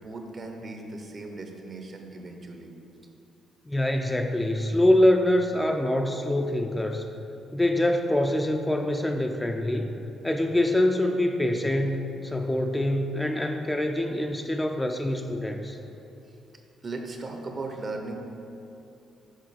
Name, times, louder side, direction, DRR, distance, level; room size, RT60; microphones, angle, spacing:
voice 1, 0.0-2.7 16.3-16.4 16.8-18.1, right 3 dB, 40° right, 3 dB, 0.7 m, -37 dB
voice 2, 3.7-7.1 7.5-9.9 10.2-15.8, left 1 dB, 10° left, 3 dB, 0.3 m, -25 dB
6.4 x 4.0 x 4.0 m, 2.8 s
cardioid pair, 90°, 0 cm